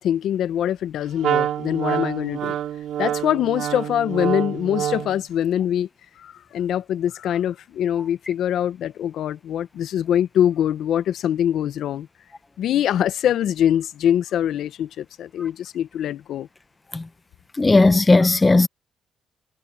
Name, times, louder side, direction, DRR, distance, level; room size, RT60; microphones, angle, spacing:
voice 1, 0.0-2.6 3.0-5.9 6.2-12.1 12.6-16.5, left 10 dB, 75° left, 0.9 m, -23 dB
Wind instrument woodwind instrument, 1.2-5.3, right 11 dB, 75° right, 3.7 m, -26 dB
voice 2, 17.6-18.7, left 3 dB, 20° left, 0.9 m, -15 dB
cardioid pair, 90°, 0 cm